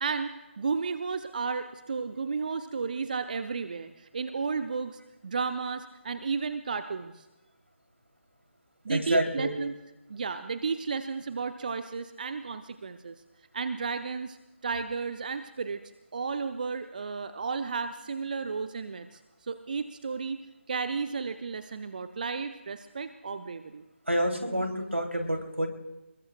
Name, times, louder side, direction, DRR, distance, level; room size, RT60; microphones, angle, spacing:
voice 1, 0.0-7.3 8.8-9.7 10.1-13.1 13.5-14.4 14.6-15.8 16.1-20.4 20.7-23.8, right 5 dB, 40° right, 9 dB, 0.7 m, -33 dB
voice 2, 8.9-9.5 24.1-25.7, equal, 85° right, 3 dB, 3.2 m, -28 dB
27.5 x 21.5 x 2.4 m, 1.0 s
figure-of-eight pair, 150°, 7 cm